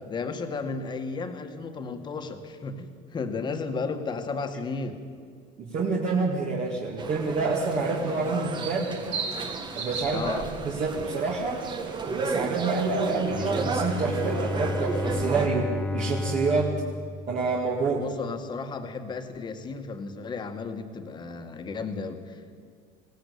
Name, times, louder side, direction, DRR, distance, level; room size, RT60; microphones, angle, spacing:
voice 1, 0.1-5.0 10.1-10.5 17.9-22.4, left 4 dB, 25° left, 6 dB, 1.7 m, -34 dB
voice 2, 5.6-8.9 9.8-10.2 10.6-11.6 12.1-16.8 17.3-18.0, right 4 dB, 45° right, -2 dB, 2.6 m, -27 dB
sound 1, 7.0-15.5, right 4 dB, 25° right, 1.5 m, -33 dB
sound 2, 7.6-14.4, right 4 dB, 75° right, 6.4 m, -40 dB
Bowed string instrument, 13.3-18.2, left 3 dB, 5° left, 0.5 m, -32 dB
20.5 x 17.5 x 8.5 m, 2.1 s
cardioid pair, 145°, 18 cm